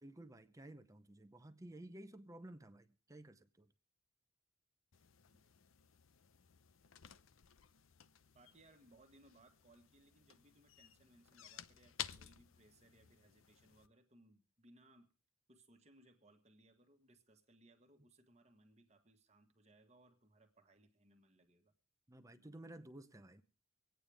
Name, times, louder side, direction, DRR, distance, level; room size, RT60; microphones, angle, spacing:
voice 1, 0.0-3.7 22.1-23.4, right 1 dB, 15° right, 0.7 m, -54 dB
sound 1, 4.9-13.9, left 10 dB, 70° left, 0.6 m, -54 dB
voice 2, 8.3-15.1 15.5-21.7, right 1 dB, 30° right, 1.4 m, -67 dB
24.5 x 9.1 x 3.4 m
head